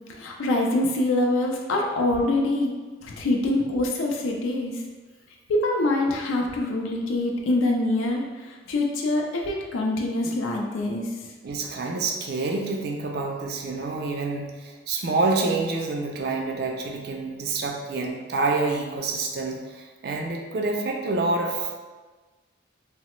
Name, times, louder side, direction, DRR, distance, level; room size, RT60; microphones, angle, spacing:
voice 1, 0.2-2.7 3.0-4.7 5.5-8.2 8.7-11.1, left 2 dB, 90° left, 0 dB, 0.4 m, -24 dB
voice 2, 11.4-21.8, right 3 dB, 55° right, 2 dB, 0.3 m, -27 dB
3.1 x 2.0 x 2.9 m, 1.3 s
head